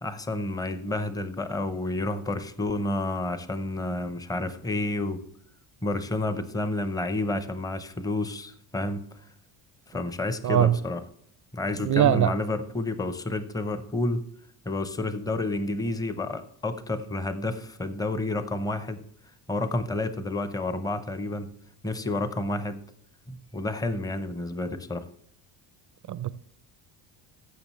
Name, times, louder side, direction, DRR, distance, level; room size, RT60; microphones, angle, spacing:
voice 1, 0.0-5.2 5.8-9.0 9.9-11.0 11.5-14.2 14.7-19.0 19.5-21.5 21.8-22.8 23.3-25.1, left 2 dB, 10° left, 11 dB, 0.6 m, -30 dB
voice 2, 10.4-10.7 11.8-12.3 26.1-26.3, right 10 dB, 40° right, 16 dB, 0.4 m, -21 dB
14.5 x 6.8 x 3.1 m, 0.69 s
cardioid pair, 130°, 49 cm